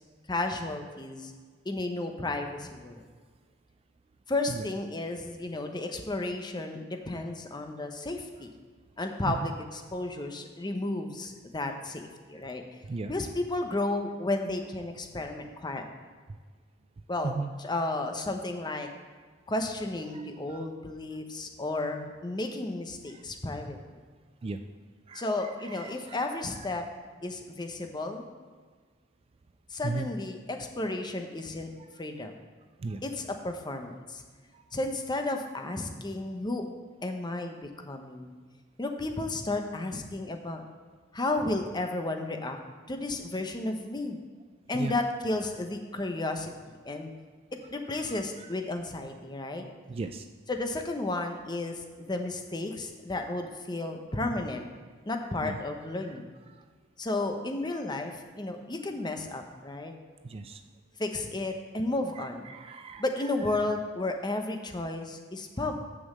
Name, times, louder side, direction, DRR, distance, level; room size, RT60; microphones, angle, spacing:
voice 1, 0.3-1.3 1.6-3.0 4.3-8.5 9.0-12.6 13.1-15.9 17.1-18.9 19.5-23.8 25.1-26.8 27.2-28.3 29.7-31.7 32.0-32.3 33.0-34.2 34.7-36.6 37.0-38.3 38.8-40.6 41.1-42.6 42.9-44.2 44.7-46.5 46.8-47.1 47.7-49.6 50.5-54.6 55.1-56.3 57.0-59.9 61.0-62.5 63.0-65.8, left 2 dB, 20° left, 5 dB, 0.8 m, -33 dB
voice 2, 25.7-26.3 29.8-30.1 32.8-33.0 34.5-34.6 44.7-44.9 48.1-48.2 49.9-50.2 55.4-55.5 60.3-60.6 62.5-63.0, right 3 dB, 30° right, 9 dB, 0.3 m, -35 dB
6.3 x 6.2 x 7.3 m, 1.5 s
head